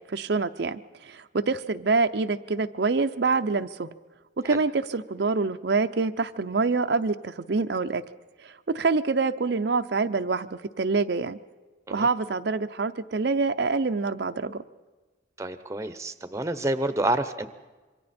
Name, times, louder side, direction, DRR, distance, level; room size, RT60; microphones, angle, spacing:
voice 1, 0.1-3.9 4.4-8.0 8.4-11.4 11.9-14.6, right 4 dB, 65° right, 8 dB, 0.6 m, -26 dB
voice 2, 15.4-17.5, right 1 dB, 15° right, 11 dB, 0.8 m, -28 dB
27.0 x 23.5 x 4.3 m, 1.3 s
head